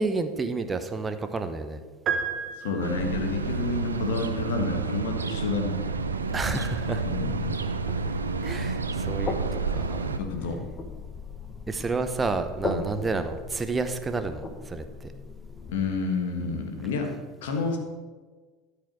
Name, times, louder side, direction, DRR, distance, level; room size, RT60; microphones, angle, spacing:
voice 1, 0.0-1.8 6.3-7.0 8.4-10.1 11.7-15.1, right 3 dB, 20° right, 9 dB, 0.8 m, -30 dB
sound 1, 2.1-3.4, right 6 dB, 40° right, 1.1 m, -31 dB
voice 2, 2.6-5.8 7.0-7.4 10.2-10.6 12.6-12.8 15.7-17.1 17.4-17.8, left 4 dB, 70° left, 4 dB, 1.5 m, -29 dB
sound 2, 2.8-10.2, right 5 dB, 85° right, 0.5 m, -30 dB
sound 3, 5.8-15.9, left 4 dB, 25° left, 1.2 m, -38 dB
12.5 x 4.9 x 6.2 m, 1.4 s
figure-of-eight pair, 75°, 0 cm